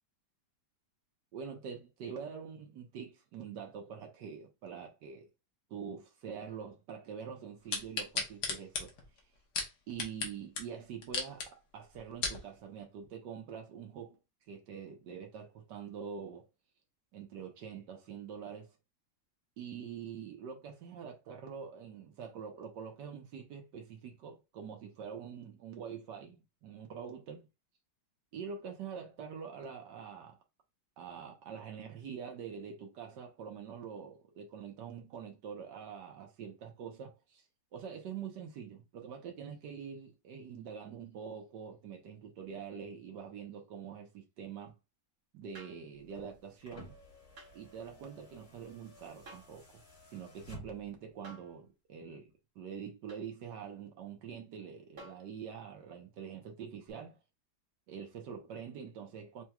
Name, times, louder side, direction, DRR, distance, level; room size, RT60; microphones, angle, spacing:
voice 1, 1.3-5.3 5.7-8.9 9.9-14.2 14.5-16.5 17.1-18.7 19.6-27.5 28.3-30.4 31.0-37.4 37.7-44.7 45.3-47.0 47.5-49.8 50.1-52.3 52.5-57.2 57.9-59.4, right 7 dB, 80° right, 1.5 m, -45 dB
sound 1, 7.7-10.3 10.6-10.7 11.0-11.5 11.9-12.4 13.0-13.1, left 4 dB, 75° left, 1.6 m, -35 dB
sound 2, 45.5-45.9 47.4-47.6 49.2-49.6 51.2-51.6 53.1-53.3 55.0-55.3 56.9-57.0, right 2 dB, 40° right, 1.2 m, -52 dB
sound 3, 46.0-51.1 52.3-52.4, left 1 dB, 55° left, 3.1 m, -54 dB
5.4 x 3.0 x 2.3 m
omnidirectional pair, 1.9 m